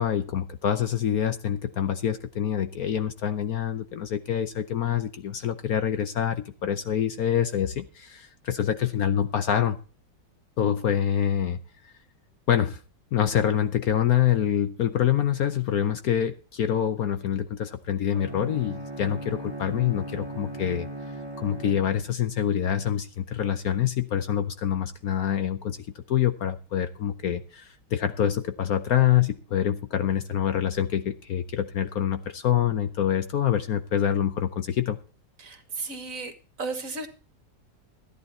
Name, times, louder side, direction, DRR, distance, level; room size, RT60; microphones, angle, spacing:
voice 1, 0.0-9.8 10.6-11.6 12.5-12.8 13.1-20.9 21.4-25.8 26.1-35.0, left 10 dB, 60° left, 10 dB, 1.1 m, -26 dB
Bowed string instrument, 18.1-22.3, right 1 dB, 15° right, 2.0 m, -38 dB
voice 2, 35.4-36.3 36.6-37.1, right 3 dB, 50° right, 9 dB, 1.8 m, -34 dB
14.0 x 9.9 x 4.3 m, 0.37 s
omnidirectional pair, 2.0 m